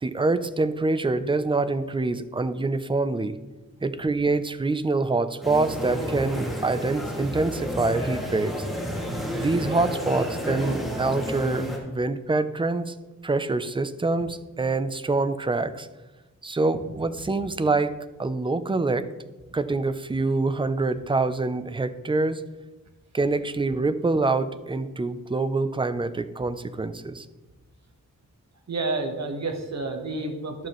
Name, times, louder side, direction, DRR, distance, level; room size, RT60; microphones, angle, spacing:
voice 1, 0.0-3.4 3.8-8.7 9.3-12.9 13.2-15.9 16.4-19.1 19.5-22.4 23.1-27.3, right 3 dB, 15° right, 12 dB, 0.5 m, -25 dB
sound 1, 5.4-11.8, equal, ahead, 2.1 m, -31 dB
voice 2, 28.7-30.7, right 3 dB, 55° right, 4 dB, 1.3 m, -30 dB
12.0 x 7.4 x 3.1 m, 1.1 s
wide cardioid pair, 90°, 32 cm